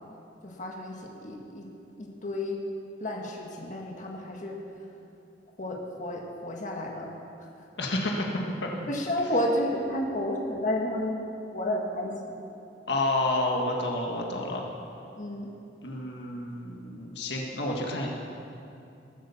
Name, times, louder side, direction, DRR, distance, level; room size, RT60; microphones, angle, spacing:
voice 1, 0.4-1.7 2.0-2.6 3.0-4.6 5.6-7.1 8.9-12.4 15.2-15.5, left 1 dB, 45° left, 0 dB, 1.8 m, -31 dB
voice 2, 7.8-8.3 8.6-8.9 12.9-14.6 15.8-18.1, left 2 dB, 70° left, 0 dB, 1.7 m, -29 dB
20.5 x 8.7 x 7.1 m, 2.7 s
head